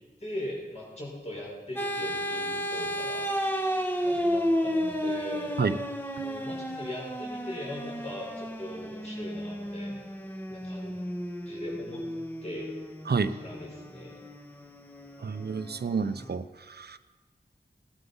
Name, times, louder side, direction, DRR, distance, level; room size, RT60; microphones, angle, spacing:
voice 1, 0.2-3.3 4.0-5.6 6.2-10.0 10.5-11.0 11.5-12.0 12.4-12.7 13.3-14.2, left 1 dB, 40° left, -3 dB, 5.6 m, -40 dB
sound 1, 1.8-16.3, equal, 10° left, 1.5 m, -33 dB
voice 2, 15.2-17.0, right 5 dB, 70° right, 11 dB, 0.8 m, -29 dB
19.0 x 11.5 x 5.6 m, 1.3 s
wide cardioid pair, 85°, 17 cm